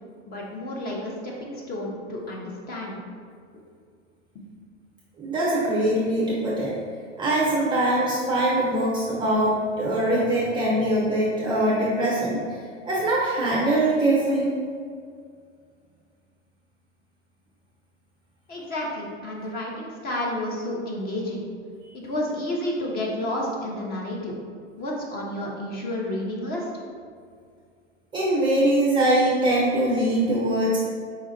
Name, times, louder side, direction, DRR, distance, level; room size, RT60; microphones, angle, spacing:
voice 1, 0.3-3.0 18.5-21.4 21.9-24.3 24.7-26.7, left 1 dB, 25° left, -2 dB, 0.9 m, -31 dB
voice 2, 5.2-6.7 7.2-12.4 12.9-14.5 28.1-30.8, right 1 dB, 15° right, -5 dB, 0.5 m, -22 dB
4.9 x 2.4 x 4.2 m, 2.1 s
hypercardioid pair, 110°, 37 cm